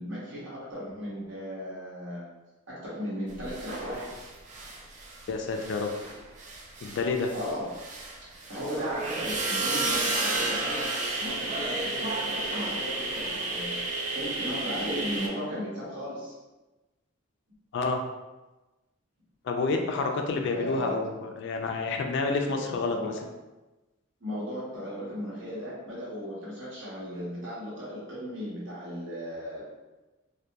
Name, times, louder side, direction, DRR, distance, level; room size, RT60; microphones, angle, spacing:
voice 1, 0.0-2.3 2.7-4.1 7.3-7.7 8.2-10.9 11.2-13.8 14.1-16.3 20.5-21.0 22.6-23.2 24.2-29.7, equal, 65° right, -8 dB, 1.0 m, -36 dB
sound 1, 3.4-5.3 5.5-15.3, right 2 dB, 40° right, 0.3 m, -32 dB
voice 2, 5.3-6.1 6.8-7.3 17.7-18.0 19.4-23.1, left 3 dB, 60° left, 4 dB, 0.3 m, -29 dB
2.7 x 2.2 x 2.2 m, 1.1 s
head